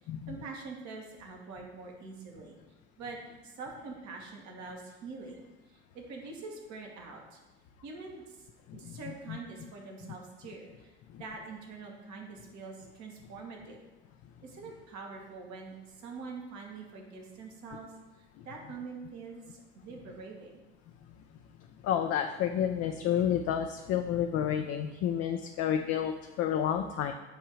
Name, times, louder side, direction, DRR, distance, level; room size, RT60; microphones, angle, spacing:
voice 1, 0.3-2.6 3.0-7.4 7.8-8.5 8.7-13.8 14.4-20.6, right 4 dB, 60° right, 0 dB, 1.5 m, -45 dB
voice 2, 21.8-27.1, left 9 dB, 50° left, 5 dB, 0.5 m, -30 dB
8.0 x 2.7 x 4.8 m, 1.1 s
hypercardioid pair, 60°, 32 cm